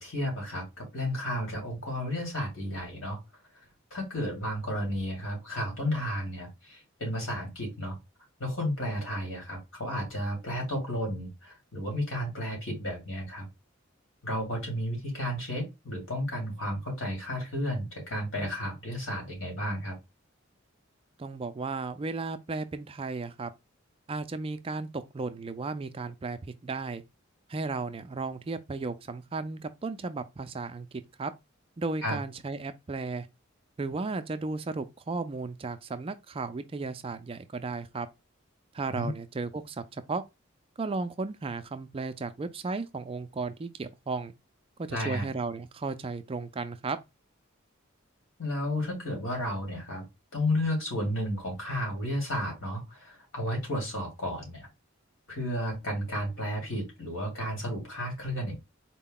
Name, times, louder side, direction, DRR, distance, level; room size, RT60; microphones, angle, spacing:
voice 1, 0.0-3.2 3.9-8.0 8.4-13.5 14.2-20.0 32.0-32.2 38.9-39.1 44.9-45.3 48.4-50.0 50.3-54.7 55.3-58.6, left 1 dB, 75° left, 2.5 m, -32 dB
voice 2, 21.2-23.5 24.1-27.0 27.5-30.9 31.2-31.3 31.8-33.3 33.8-38.1 38.7-40.2 40.8-44.3 44.8-47.0, right 3 dB, 30° right, 0.4 m, -34 dB
4.3 x 2.2 x 3.7 m
head